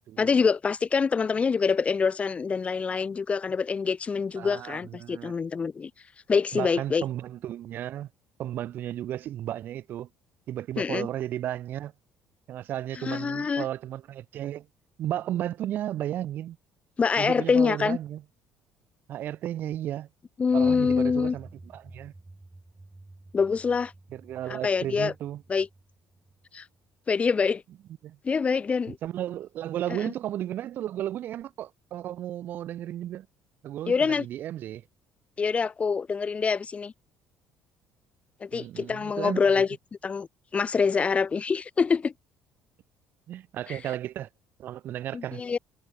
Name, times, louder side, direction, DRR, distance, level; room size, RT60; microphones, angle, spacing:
voice 1, 0.2-5.9 6.3-7.0 10.8-11.1 13.0-13.7 17.0-18.0 20.4-21.3 23.3-23.9 24.5-25.1 25.5-25.7 26.5-26.6 27.1-27.6 28.2-29.0 29.9-30.1 33.9-34.3 35.4-36.9 38.4-39.7 40.0-40.3 40.5-42.1 43.7-43.8 45.1-45.6, left 5 dB, 30° left, 0.8 m, -25 dB
voice 2, 4.3-5.3 6.5-8.1 8.4-10.1 10.5-11.9 12.5-14.7 15.0-16.6 17.2-18.2 19.1-20.1 20.5-22.1 24.1-25.4 28.0-28.2 29.0-33.3 33.6-34.8 38.5-39.7 43.3-44.3 44.6-45.4, right 12 dB, 55° right, 0.9 m, -34 dB
sound 1, 20.5-27.0, right 2 dB, 15° right, 3.4 m, -50 dB
figure-of-eight pair, 50°, 4 cm